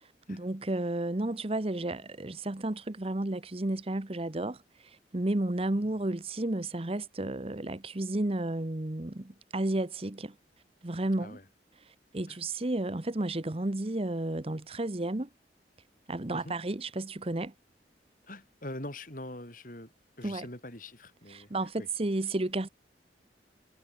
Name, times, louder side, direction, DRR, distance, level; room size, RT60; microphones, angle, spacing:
voice 1, 0.0-10.3 10.8-11.4 11.9-15.3 16.1-17.5 20.2-20.5 21.3-22.7, right 2 dB, 35° right, 1.0 m, -32 dB
voice 2, 18.3-19.9 20.2-21.5 21.8-21.9, left 1 dB, 50° left, 6.6 m, -43 dB
head